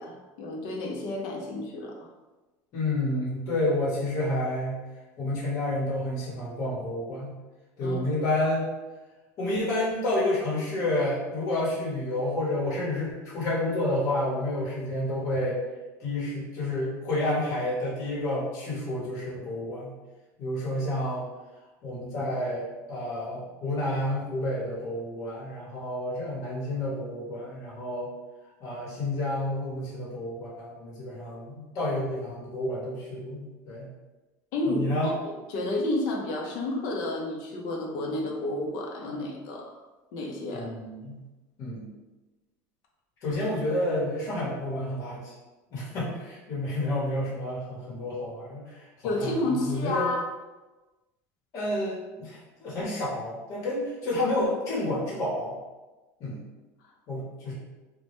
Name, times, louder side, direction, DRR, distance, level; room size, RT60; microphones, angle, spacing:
voice 1, 0.0-2.0 7.8-8.0 34.5-39.7 40.1-40.7 49.0-50.2, left 2 dB, 65° left, 0 dB, 0.5 m, -30 dB
voice 2, 2.7-4.8 5.2-7.4 7.8-8.7 9.4-15.6 16.0-19.9 20.4-21.3 21.8-28.1 28.6-33.9 34.6-35.1 40.5-41.2 41.6-41.9 43.2-45.3 45.7-50.1 51.5-55.6 56.2-56.4 57.1-57.5, left 1 dB, 45° left, -7 dB, 0.9 m, -30 dB
2.1 x 2.0 x 2.9 m, 1.2 s
supercardioid pair, 130°, 7 cm